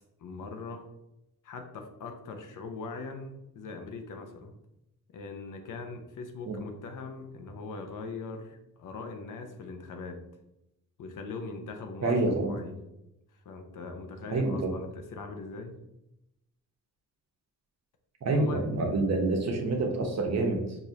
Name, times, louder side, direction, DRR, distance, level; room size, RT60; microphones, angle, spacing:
voice 1, 0.2-0.8 1.4-4.5 5.1-10.2 11.0-12.7 13.4-15.7 18.3-18.6, left 3 dB, 65° left, 5 dB, 0.7 m, -41 dB
voice 2, 12.0-12.5 14.3-14.7 18.2-20.8, right 2 dB, 50° right, 2 dB, 0.9 m, -27 dB
4.8 x 2.7 x 2.7 m, 0.88 s
cardioid pair, 85°, 34 cm